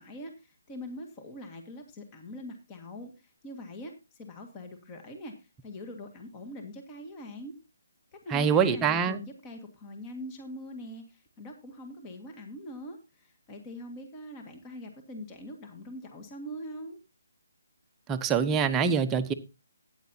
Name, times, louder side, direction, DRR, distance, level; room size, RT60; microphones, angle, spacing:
voice 1, 0.0-7.6 8.1-17.0, equal, 20° left, 1.9 m, -43 dB
voice 2, 8.3-9.2 18.1-19.3, right 6 dB, 15° right, 0.9 m, -25 dB
14.0 x 9.5 x 2.8 m
figure-of-eight pair, 150°, 0 cm